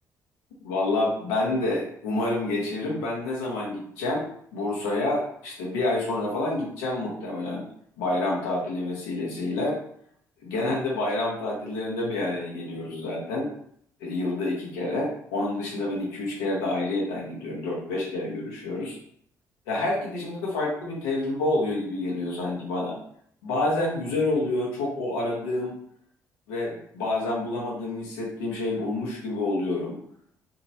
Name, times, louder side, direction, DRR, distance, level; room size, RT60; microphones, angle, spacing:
voice 1, 0.6-7.6 8.0-9.8 10.4-13.5 14.0-19.0 19.7-23.0 23.4-25.7 26.5-30.0, left 2 dB, 70° left, -4 dB, 0.8 m, -28 dB
2.9 x 2.4 x 2.7 m, 0.66 s
figure-of-eight pair, 45°, 9 cm